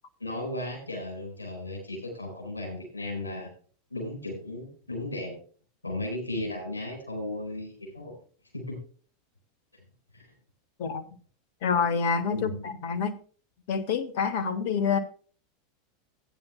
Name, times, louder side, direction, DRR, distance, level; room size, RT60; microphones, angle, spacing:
voice 1, 0.2-3.5 3.9-5.3 5.8-8.2 8.5-8.8 10.1-10.3 12.3-12.7, left 1 dB, 85° left, 1 dB, 4.4 m, -35 dB
voice 2, 11.6-13.2 13.7-15.0, left 6 dB, 55° left, 8 dB, 1.5 m, -27 dB
16.0 x 9.8 x 2.2 m, 0.41 s
figure-of-eight pair, 85°, 0 cm